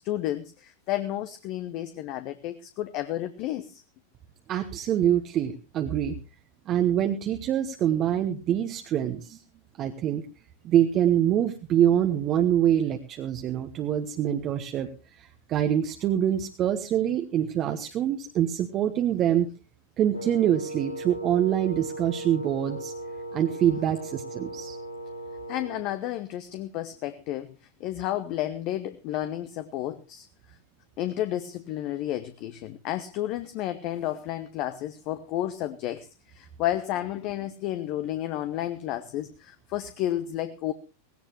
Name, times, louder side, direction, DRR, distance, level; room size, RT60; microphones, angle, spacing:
voice 1, 0.0-3.8 25.5-27.5 27.8-30.3 31.0-40.7, left 13 dB, 40° left, 11 dB, 0.8 m, -31 dB
voice 2, 4.5-6.1 6.7-9.4 9.8-10.3 10.6-14.9 15.2-19.5 20.0-22.9 23.3-24.8, right 10 dB, 35° right, 6 dB, 1.1 m, -25 dB
Wind instrument woodwind instrument, 20.1-25.9, right 1 dB, 75° left, 1.1 m, -37 dB
18.0 x 16.5 x 3.0 m, 0.32 s
figure-of-eight pair, 90°, 0 cm